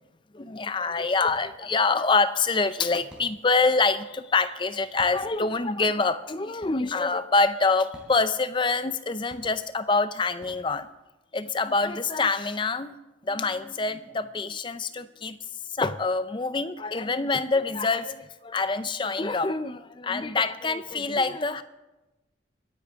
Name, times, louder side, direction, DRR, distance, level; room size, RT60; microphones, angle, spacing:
voice 1, 0.3-10.9 11.3-13.0 13.2-15.4 15.7-21.6, left 3 dB, 25° left, 13 dB, 0.5 m, -26 dB
sound 1, 1.2-1.7 3.1-3.6 4.6-4.7 5.0-5.6 6.6-7.1 7.9-8.5 9.3-10.0 10.4-11.1, equal, 5° right, 3.6 m, -52 dB
23.5 x 10.0 x 3.6 m, 1.0 s
head